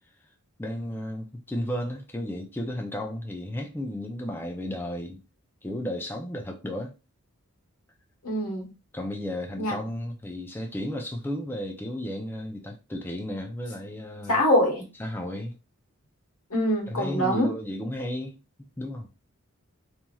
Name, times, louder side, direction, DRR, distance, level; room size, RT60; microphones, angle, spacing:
voice 1, 0.6-5.2 5.6-6.9 8.9-14.4 15.0-15.5 16.9-18.4 18.8-19.1, left 1 dB, 10° left, 0.4 m, -33 dB
voice 2, 8.2-8.7 9.6-9.8 14.3-14.8 16.5-17.5, equal, 90° left, 1.3 m, -24 dB
2.9 x 2.6 x 2.3 m
head